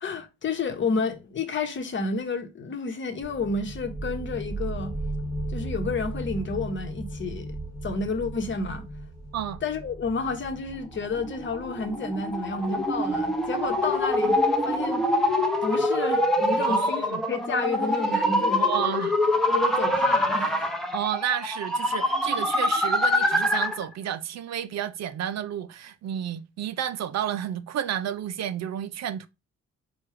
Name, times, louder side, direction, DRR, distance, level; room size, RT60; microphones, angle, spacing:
voice 1, 0.0-4.9 5.5-7.6 7.8-8.9 9.6-14.4 14.6-15.1 15.6-18.6 19.5-20.7, left 4 dB, 40° left, 1.0 m, -30 dB
sound 1, 3.2-14.6, right 2 dB, 15° right, 1.1 m, -37 dB
sound 2, 11.1-23.9, left 1 dB, ahead, 0.8 m, -25 dB
voice 2, 16.6-17.2 18.5-19.1 20.9-29.3, right 10 dB, 60° right, 0.5 m, -31 dB
4.4 x 2.4 x 4.7 m
cardioid pair, 90°, 30 cm